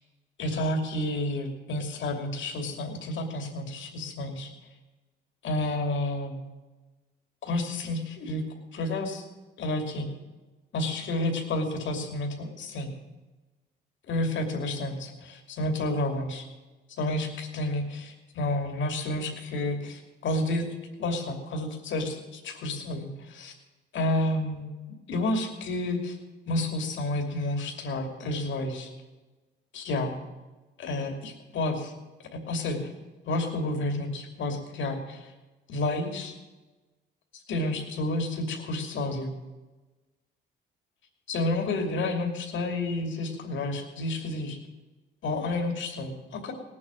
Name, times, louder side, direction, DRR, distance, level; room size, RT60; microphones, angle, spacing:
voice 1, 0.4-4.5 5.4-6.4 7.4-8.4 8.7-9.2 9.6-10.1 10.7-12.9 14.0-16.5 17.0-20.7 21.0-23.5 23.9-24.7 25.1-26.2 26.5-28.9 29.7-30.2 30.8-31.9 32.3-32.9 33.2-35.3 35.7-36.3 37.3-39.3 41.3-44.6 45.2-46.5, left 2 dB, 70° left, 3 dB, 2.7 m, -30 dB
18.5 x 8.5 x 7.6 m, 1.2 s
cardioid pair, 90°, 20 cm